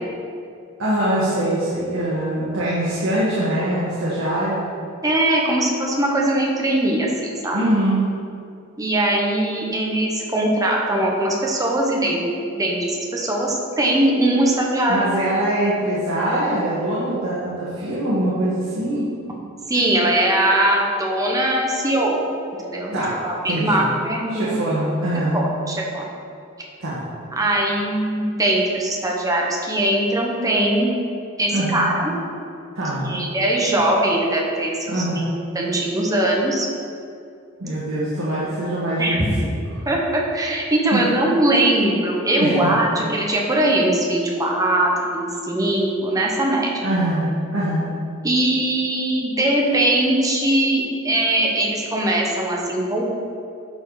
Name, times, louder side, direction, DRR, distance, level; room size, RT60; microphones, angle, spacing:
voice 1, 0.8-4.6 7.5-8.1 14.9-19.1 22.9-23.9 24.3-25.4 26.8-27.1 31.5-31.9 32.8-33.2 34.9-35.2 37.6-39.2 40.9-41.0 42.4-42.7 46.8-47.9, right 1 dB, 70° right, -9 dB, 1.8 m, -23 dB
voice 2, 5.0-7.7 8.8-15.1 19.7-22.3 22.6-23.0 23.2-24.6 25.3-26.1 27.4-30.9 31.4-32.1 32.9-35.3 35.5-36.7 39.0-39.3 39.9-46.7 48.2-53.0, right 1 dB, 15° right, -2 dB, 1.2 m, -21 dB
11.0 x 5.1 x 4.1 m, 2.5 s
head